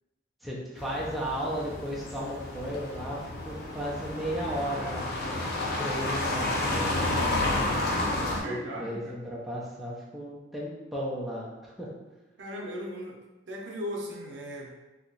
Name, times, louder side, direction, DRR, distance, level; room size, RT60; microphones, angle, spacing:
voice 1, 0.4-7.8 8.2-11.9, equal, ahead, -6 dB, 0.5 m, -35 dB
sound 1, 0.8-8.4, left 2 dB, 55° left, 0.6 m, -31 dB
voice 2, 8.4-9.2 12.4-13.2 13.5-14.7, equal, 75° right, -1 dB, 0.6 m, -37 dB
2.8 x 2.2 x 3.8 m, 1.1 s
head